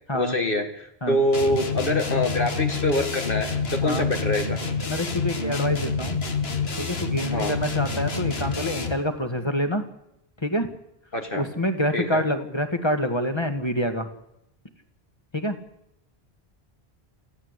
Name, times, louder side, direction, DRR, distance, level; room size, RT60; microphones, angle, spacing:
voice 1, 0.1-4.6 7.3-7.5 11.1-11.5 11.9-12.2, left 1 dB, 60° left, 4 dB, 2.1 m, -25 dB
sound 1, 1.3-9.1, left 4 dB, 75° left, 2.0 m, -28 dB
voice 2, 4.8-6.2 6.8-9.8 10.4-10.7 11.3-14.1 15.3-15.6, equal, 25° left, 7 dB, 1.9 m, -26 dB
26.5 x 15.0 x 8.2 m, 0.85 s
omnidirectional pair, 1.0 m